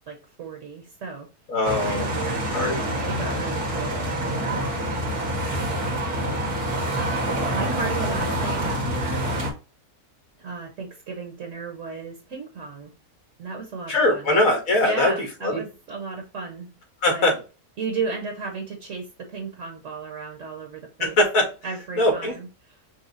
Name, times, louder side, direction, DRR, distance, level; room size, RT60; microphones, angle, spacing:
voice 1, 0.1-1.3 1.8-2.5 2.8-4.6 5.2-5.9 7.0-9.2 10.4-12.9 13.4-14.3 14.8-16.8 17.1-17.4 17.8-21.2 21.6-22.8, right 4 dB, 55° right, 1 dB, 1.4 m, -34 dB
voice 2, 1.5-2.0 2.5-2.8 13.9-15.1 15.4-15.6 17.0-17.3 21.0-21.5 22.0-22.4, left 1 dB, 65° left, 2 dB, 2.2 m, -21 dB
sound 1, 1.6-9.5, right 1 dB, 75° right, 1.9 m, -26 dB
5.7 x 2.3 x 3.9 m, 0.32 s
omnidirectional pair, 1.6 m